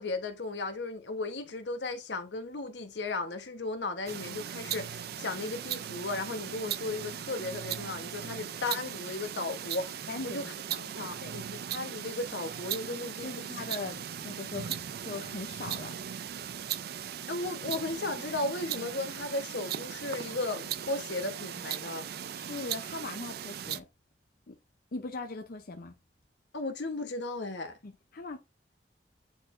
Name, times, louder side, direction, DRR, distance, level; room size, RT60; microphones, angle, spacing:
voice 1, 0.0-10.5 11.0-13.3 17.3-22.1 26.5-27.8, left 2 dB, 80° left, 1.1 m, -35 dB
sound 1, 4.1-23.8, right 9 dB, 60° right, 0.4 m, -38 dB
voice 2, 10.1-10.4 10.7-11.3 13.2-15.9 22.3-23.9 24.5-24.6 24.9-25.9 27.8-28.4, left 3 dB, 55° left, 0.7 m, -40 dB
8.8 x 4.2 x 2.6 m
head